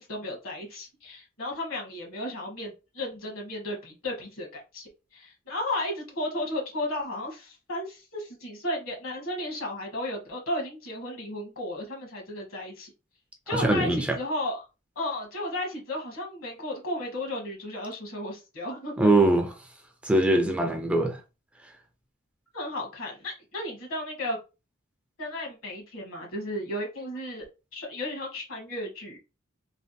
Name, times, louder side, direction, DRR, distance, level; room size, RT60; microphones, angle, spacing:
voice 1, 0.0-12.9 13.5-14.6 14.9-19.1 22.5-24.4 25.2-27.4 27.7-29.2, left 1 dB, 70° left, 1.2 m, -34 dB
voice 2, 13.5-14.2 19.0-19.5 20.0-21.2, right 2 dB, 5° right, 0.3 m, -22 dB
3.2 x 2.2 x 2.6 m
head